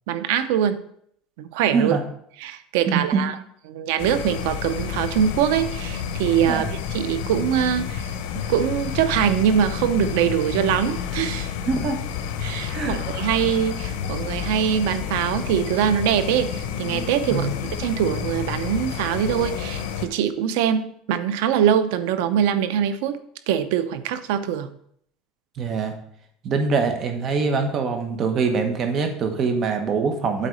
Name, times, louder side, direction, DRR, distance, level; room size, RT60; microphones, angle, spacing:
voice 1, 0.1-0.8 1.4-2.0 2.4-3.3 3.7-6.7 6.9-11.5 12.4-23.2 23.5-24.7, right 9 dB, 80° right, 12 dB, 0.7 m, -23 dB
voice 2, 1.7-2.0 2.9-3.2 6.4-6.7 11.7-12.0 12.7-13.0 17.3-17.5 25.6-26.0 26.4-30.5, right 4 dB, 35° right, 5 dB, 1.2 m, -23 dB
sound 1, 4.0-20.1, left 8 dB, 80° left, 0.9 m, -30 dB
8.4 x 4.0 x 6.3 m, 0.67 s
cardioid pair, 150°, 0 cm